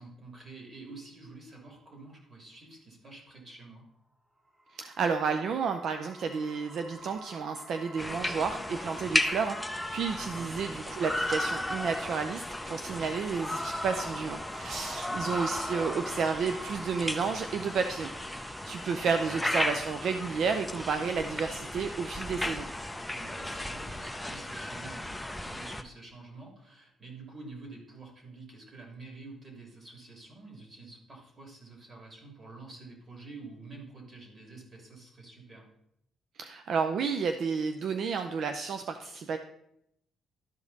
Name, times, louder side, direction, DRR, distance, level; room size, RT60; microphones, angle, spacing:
voice 1, 0.0-3.9 10.1-10.5 15.0-15.4 18.9-19.3 23.1-35.7, right 3 dB, 35° right, 1 dB, 2.8 m, -48 dB
sound 1, 4.5-21.7, right 1 dB, 15° right, 1.0 m, -48 dB
voice 2, 4.7-22.7 36.4-39.4, right 5 dB, 65° right, 7 dB, 0.5 m, -31 dB
sound 2, 8.0-25.8, left 1 dB, 5° left, 0.6 m, -35 dB
12.5 x 5.1 x 4.1 m, 0.78 s
cardioid pair, 90°, 0 cm